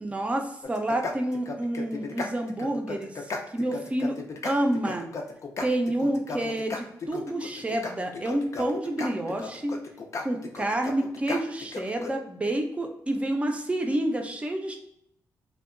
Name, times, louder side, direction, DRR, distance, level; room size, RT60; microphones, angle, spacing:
voice 1, 0.0-4.2 4.4-5.1 5.6-9.8 10.2-14.8, right 1 dB, 20° right, 4 dB, 0.4 m, -29 dB
sound 1, 0.6-12.1, left 3 dB, 45° left, 0.4 m, -35 dB
2.6 x 2.2 x 2.4 m, 0.73 s
cardioid pair, 90°, 7 cm